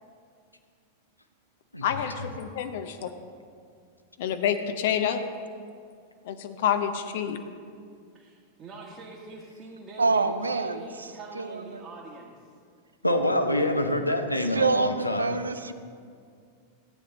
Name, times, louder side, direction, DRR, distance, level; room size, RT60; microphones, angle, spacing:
voice 1, 1.8-2.9 4.2-5.2 6.2-7.4, left 9 dB, 55° left, 8 dB, 0.7 m, -28 dB
voice 2, 8.1-12.3, right 2 dB, 30° right, -4 dB, 1.6 m, -44 dB
voice 3, 10.0-10.8 11.3-11.8 14.3-15.7, right 4 dB, 75° right, 11 dB, 0.5 m, -27 dB
voice 4, 13.0-15.4, left 1 dB, 85° left, 6 dB, 0.8 m, -25 dB
14.5 x 9.2 x 4.1 m, 2.2 s
figure-of-eight pair, 90°, 0 cm